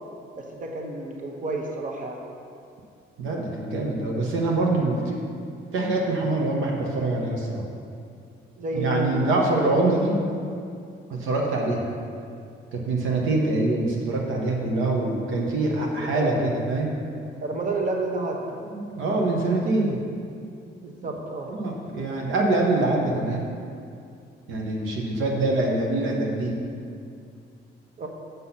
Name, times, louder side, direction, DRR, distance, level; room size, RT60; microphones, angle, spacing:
voice 1, 0.4-2.2 8.6-9.1 16.0-16.3 17.4-18.6 20.8-21.5 25.2-25.3 28.0-28.1, right 2 dB, 40° right, 0 dB, 1.3 m, -30 dB
voice 2, 3.2-5.2 5.7-7.6 8.7-10.2 11.1-11.8 12.7-16.9 18.6-20.0 21.5-23.5 24.5-26.6, right 2 dB, 90° right, -1 dB, 1.2 m, -24 dB
7.3 x 6.1 x 5.7 m, 2.4 s
cardioid pair, 90°, 20 cm